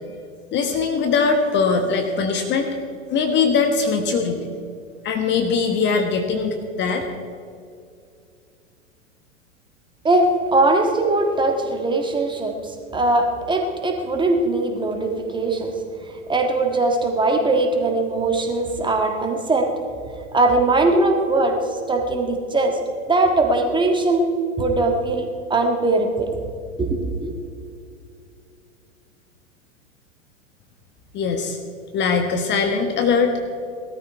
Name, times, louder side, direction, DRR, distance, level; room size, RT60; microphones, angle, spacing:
voice 1, 0.5-2.7 3.1-4.4 5.0-7.1 31.1-31.6 31.9-33.3, left 5 dB, 30° left, 5 dB, 1.3 m, -21 dB
voice 2, 10.0-15.7 16.3-19.7 20.3-21.6 21.9-22.8 23.1-24.2 24.6-26.3 26.8-27.3, right 2 dB, 10° right, 3 dB, 1.8 m, -20 dB
18.0 x 13.5 x 4.6 m, 2.4 s
figure-of-eight pair, 95°, 39 cm